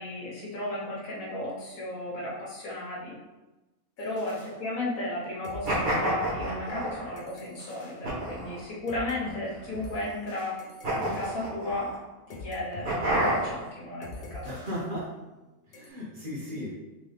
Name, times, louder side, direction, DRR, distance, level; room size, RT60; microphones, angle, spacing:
voice 1, 0.0-3.1 4.0-10.6 11.0-11.9 12.3-14.8, left 1 dB, 75° left, -5 dB, 1.6 m, -34 dB
sound 1, 4.0-5.2 5.4-9.2 9.7-12.8 13.2-13.4 14.0-15.4 15.7-15.9, left 2 dB, 50° left, 0.9 m, -46 dB
sound 2, 5.6-7.2 8.0-8.6 9.2-10.0 10.8-12.0 12.8-13.7, right 1 dB, 90° right, 1.8 m, -29 dB
voice 2, 14.4-15.1 15.7-16.8, equal, 45° right, -5 dB, 0.9 m, -36 dB
3.8 x 3.7 x 3.3 m, 1.1 s
omnidirectional pair, 1.5 m